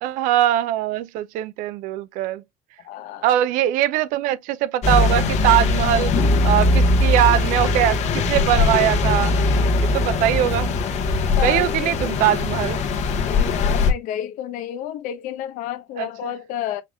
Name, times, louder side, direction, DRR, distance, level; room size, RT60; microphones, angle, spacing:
voice 1, 0.0-2.4 3.2-6.1 6.4-9.3 9.8-10.7 11.3-12.8 16.0-16.1, right 12 dB, 80° right, 0.6 m, -21 dB
voice 2, 2.8-3.3 11.4-12.1 13.2-16.8, left 11 dB, 80° left, 0.9 m, -31 dB
sound 1, 4.8-13.9, left 3 dB, 60° left, 1.3 m, -20 dB
5.7 x 3.5 x 2.3 m
cardioid pair, 115°, 13 cm